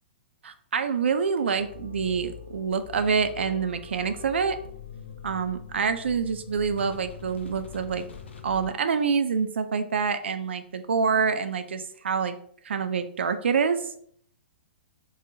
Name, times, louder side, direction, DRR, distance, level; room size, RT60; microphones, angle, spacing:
voice 1, 0.4-4.6 5.2-8.0 8.4-12.4 12.6-13.9, right 6 dB, 80° right, 10 dB, 0.4 m, -26 dB
sound 1, 1.6-8.7, left 7 dB, 80° left, 0.4 m, -43 dB
3.8 x 2.1 x 2.6 m, 0.62 s
hypercardioid pair, 125°, 6 cm